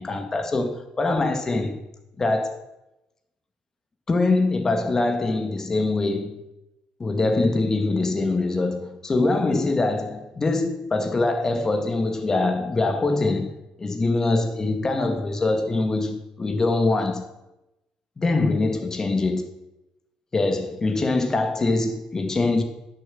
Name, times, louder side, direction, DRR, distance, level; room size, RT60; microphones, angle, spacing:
voice 1, 0.0-1.8 2.2-2.6 4.1-6.4 7.0-17.3 18.2-19.4 20.3-22.6, left 2 dB, 25° left, 1.7 m, -23 dB
10.5 x 7.2 x 7.6 m
cardioid pair, 130°, 2 cm